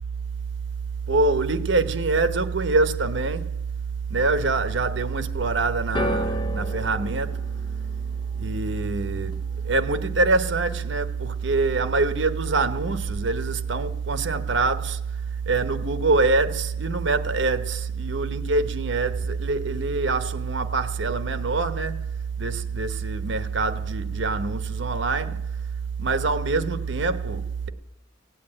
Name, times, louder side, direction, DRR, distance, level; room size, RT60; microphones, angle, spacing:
voice 1, 1.1-3.5 4.1-7.4 8.4-9.4 9.6-15.0 15.5-22.0 22.4-25.4 26.0-27.7, right 3 dB, 70° right, 1.0 m, -24 dB
sound 1, 5.9-12.2 12.5-13.2 13.9-14.0, left 1 dB, 25° left, 0.8 m, -36 dB
17.5 x 8.5 x 8.7 m
head